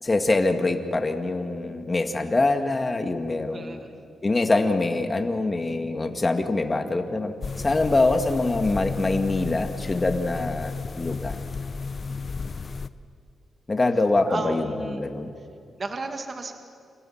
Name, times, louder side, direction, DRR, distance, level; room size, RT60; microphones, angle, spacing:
voice 1, 0.0-3.8 4.2-11.4 13.7-15.4, left 2 dB, 25° left, 6 dB, 2.0 m, -24 dB
voice 2, 3.5-4.1 7.6-7.9 10.3-10.5 12.1-12.3 14.2-15.1 15.8-16.5, right 3 dB, 40° right, 5 dB, 2.1 m, -35 dB
sound 1, 7.4-12.9, left 4 dB, 40° left, 0.9 m, -33 dB
28.5 x 26.5 x 5.9 m, 2.5 s
cardioid pair, 110°, 0 cm